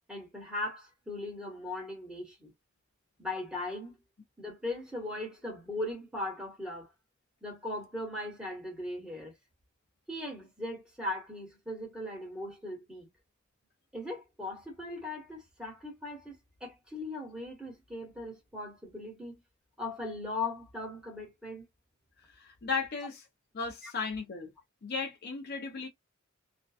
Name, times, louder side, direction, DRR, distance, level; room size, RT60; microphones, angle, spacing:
voice 1, 0.1-2.5 3.2-4.0 4.4-6.9 7.4-9.3 10.1-13.1 13.9-19.3 19.8-21.6 23.8-23.9, left 2 dB, 5° right, 1.1 m, -39 dB
voice 2, 22.2-23.2 23.5-24.5 24.8-25.9, left 4 dB, 50° left, 0.6 m, -35 dB
2.5 x 2.2 x 2.4 m
head